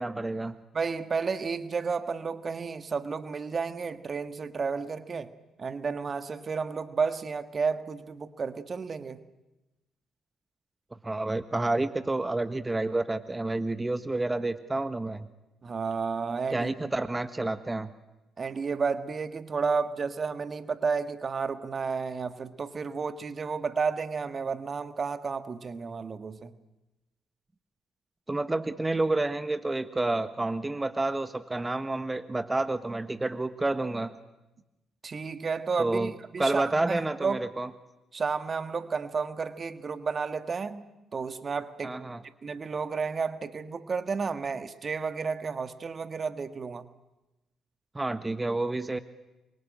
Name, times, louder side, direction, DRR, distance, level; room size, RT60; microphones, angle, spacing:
voice 1, 0.0-0.6 11.0-15.3 16.5-17.9 28.3-34.1 35.8-36.1 36.4-37.7 41.8-42.2 47.9-49.0, right 2 dB, 20° right, 11 dB, 1.5 m, -29 dB
voice 2, 0.7-5.3 5.6-9.2 15.6-16.9 18.4-26.5 35.0-37.4 38.1-40.8 41.1-42.0 42.4-46.9, right 5 dB, 40° right, 11 dB, 1.7 m, -32 dB
28.0 x 23.5 x 8.9 m, 1.0 s
figure-of-eight pair, 40°, 0 cm